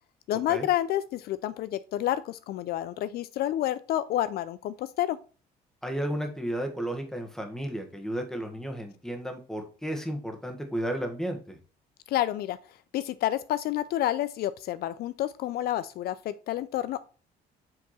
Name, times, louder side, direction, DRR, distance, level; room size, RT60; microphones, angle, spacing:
voice 1, 0.3-5.2 12.1-12.6 12.9-17.0, left 12 dB, 65° left, 0.4 m, -29 dB
voice 2, 5.8-11.6, right 1 dB, 5° left, 1.5 m, -33 dB
7.7 x 3.5 x 4.1 m
cardioid pair, 110°, 17 cm